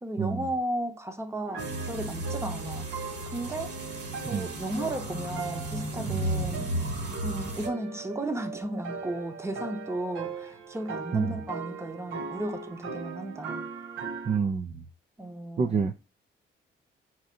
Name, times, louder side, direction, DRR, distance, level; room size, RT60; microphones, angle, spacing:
voice 1, 0.0-2.9 3.3-3.7 4.3-6.7 7.2-13.6 15.2-15.8, right 1 dB, 15° right, 0.8 m, -34 dB
sound 1, 1.5-14.4, right 5 dB, 80° right, 0.7 m, -39 dB
sound 2, 1.6-7.7, right 1 dB, 60° right, 1.8 m, -34 dB
voice 2, 14.3-14.8 15.6-15.9, right 6 dB, 35° right, 0.4 m, -27 dB
4.4 x 2.6 x 3.6 m
cardioid pair, 90°, 20 cm